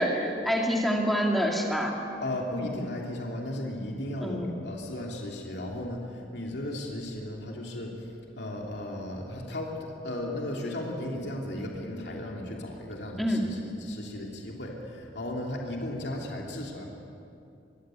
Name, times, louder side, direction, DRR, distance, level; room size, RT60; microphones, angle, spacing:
voice 1, 0.0-1.9 4.2-4.6 13.2-13.4, equal, ahead, -1 dB, 2.4 m, -26 dB
voice 2, 2.2-16.8, left 1 dB, 60° left, -1 dB, 3.0 m, -35 dB
24.0 x 15.5 x 9.1 m, 2.6 s
head